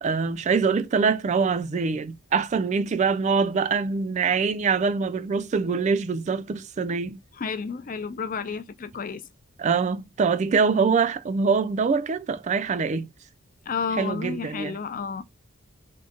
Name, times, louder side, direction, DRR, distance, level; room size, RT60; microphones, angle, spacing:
voice 1, 0.0-7.2 9.6-13.1 14.0-14.8, right 5 dB, 35° right, 0.3 m, -24 dB
voice 2, 7.4-9.2 13.7-15.2, left 5 dB, 40° left, 0.5 m, -31 dB
3.8 x 2.2 x 3.7 m
head